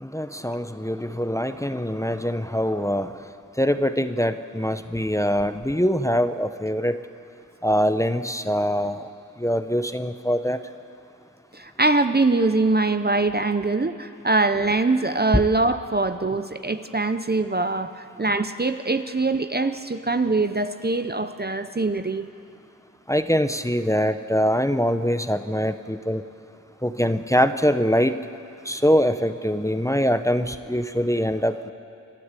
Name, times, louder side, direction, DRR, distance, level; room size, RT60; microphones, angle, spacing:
voice 1, 0.0-3.2 3.6-7.0 7.6-9.1 9.4-10.6 23.1-26.2 26.8-28.2 28.6-31.7, equal, 10° left, 9 dB, 0.8 m, -23 dB
voice 2, 11.5-22.3, right 3 dB, 30° right, 10 dB, 0.7 m, -23 dB
27.0 x 12.0 x 8.3 m, 2.4 s
wide cardioid pair, 55°, 32 cm